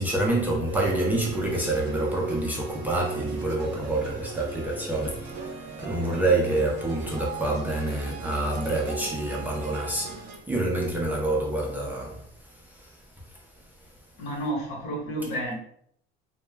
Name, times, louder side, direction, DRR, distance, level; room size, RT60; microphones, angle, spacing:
voice 1, 0.0-10.2 10.5-12.2 12.8-12.9, right 2 dB, 10° right, 0.3 m, -27 dB
sound 1, 0.7-10.4, right 4 dB, 70° right, 0.5 m, -37 dB
voice 2, 14.2-15.5, right 1 dB, 70° left, 1.0 m, -30 dB
2.1 x 2.1 x 3.2 m
cardioid pair, 150°, 21 cm